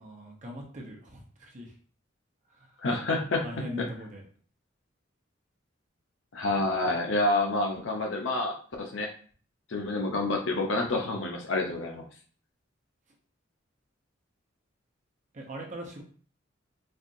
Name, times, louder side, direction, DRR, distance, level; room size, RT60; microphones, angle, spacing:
voice 1, 0.0-1.7 2.5-2.7 3.4-4.2 15.3-16.0, equal, 40° right, -1 dB, 0.9 m, -41 dB
voice 2, 2.8-3.5 3.8-3.9 6.3-9.1 9.7-12.0, left 2 dB, 75° left, 2 dB, 0.6 m, -28 dB
4.3 x 2.5 x 2.6 m, 0.43 s
head